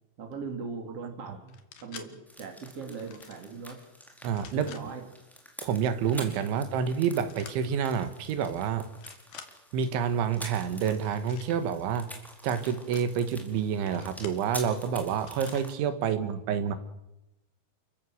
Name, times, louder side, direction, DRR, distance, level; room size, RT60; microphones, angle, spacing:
voice 1, 0.2-3.8 4.5-5.1 16.0-16.3 16.6-16.7, right 5 dB, 40° right, 3 dB, 3.2 m, -40 dB
sound 1, 1.5-2.1 2.9-3.5 4.2-4.8 7.3-7.6 8.3-8.5 8.9-9.5 10.7-11.5 12.4-13.0 13.9-14.4 15.2-15.7, left 8 dB, 60° left, 3.3 m, -49 dB
sound 2, 2.3-15.7, equal, ahead, 3.9 m, -47 dB
voice 2, 4.2-4.7 5.6-8.9 9.7-12.1 12.4-16.8, right 7 dB, 85° right, 9 dB, 4.0 m, -28 dB
29.0 x 15.0 x 7.9 m, 0.95 s
omnidirectional pair, 5.2 m